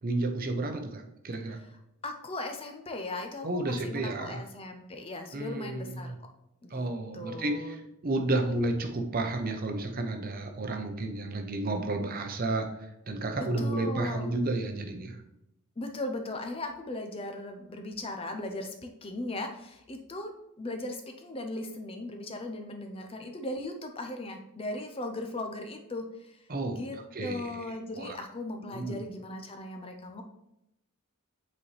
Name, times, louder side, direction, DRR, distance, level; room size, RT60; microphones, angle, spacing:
voice 1, 0.0-1.6 3.4-4.4 5.3-6.1 6.7-12.7 13.1-15.2 26.5-27.6 27.9-28.2 28.7-29.0, right 2 dB, 40° right, 5 dB, 0.7 m, -32 dB
voice 2, 2.0-6.1 6.6-6.9 7.1-7.8 13.4-14.3 15.8-20.3 20.6-26.4 26.7-30.2, left 2 dB, 25° left, 4 dB, 0.6 m, -38 dB
8.2 x 4.2 x 3.3 m, 0.84 s
head